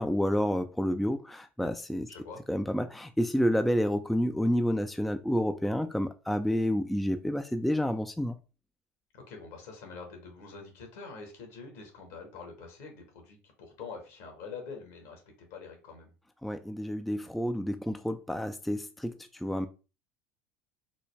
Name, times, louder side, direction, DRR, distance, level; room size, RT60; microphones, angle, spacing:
voice 1, 0.0-2.1 2.5-8.4 16.4-19.7, equal, ahead, 0.3 m, -29 dB
voice 2, 2.1-2.4 9.1-15.2 15.5-16.1, left 4 dB, 70° left, 1.5 m, -45 dB
4.0 x 2.2 x 3.2 m
hypercardioid pair, 80°, 7 cm